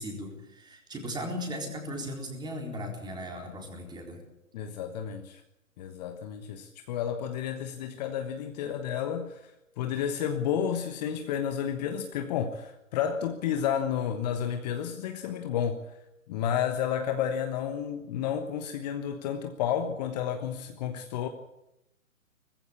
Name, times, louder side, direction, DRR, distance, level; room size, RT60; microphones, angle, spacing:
voice 1, 0.0-4.2, equal, 10° right, 4.0 m, -37 dB
voice 2, 4.5-5.4 5.8-15.8 16.3-21.3, left 8 dB, 30° left, 1.3 m, -31 dB
20.5 x 15.0 x 8.4 m
figure-of-eight pair, 125°, 40 cm